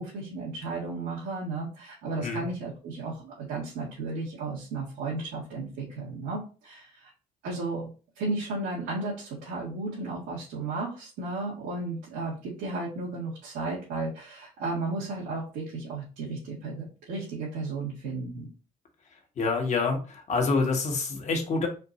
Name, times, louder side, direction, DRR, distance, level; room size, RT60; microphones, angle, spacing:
voice 1, 0.0-7.1 7.4-7.9 8.1-18.5, right 3 dB, 90° right, -7 dB, 1.8 m, -34 dB
voice 2, 19.4-21.7, left 4 dB, 45° left, 2 dB, 1.3 m, -27 dB
4.3 x 2.6 x 4.0 m, 0.35 s
cardioid pair, 110°, 17 cm